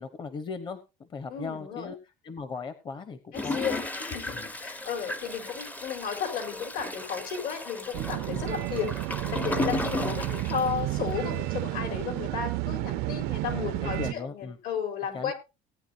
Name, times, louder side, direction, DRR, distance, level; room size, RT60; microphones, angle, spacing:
voice 1, 0.0-2.0 2.2-3.8 4.3-4.5 8.3-8.5 13.5-14.6 15.1-15.3, left 4 dB, 30° left, 11 dB, 1.0 m, -38 dB
voice 2, 1.3-1.9 3.3-9.0 9.3-15.3, left 7 dB, 70° left, 5 dB, 4.2 m, -34 dB
Toilet flush, 3.3-11.4 11.9-12.0 12.1-12.2, left 2 dB, 10° left, 0.6 m, -35 dB
sound 1, 7.9-14.1, right 18 dB, 75° right, 0.6 m, -31 dB
18.5 x 9.6 x 2.7 m, 0.27 s
cardioid pair, 155°, 16 cm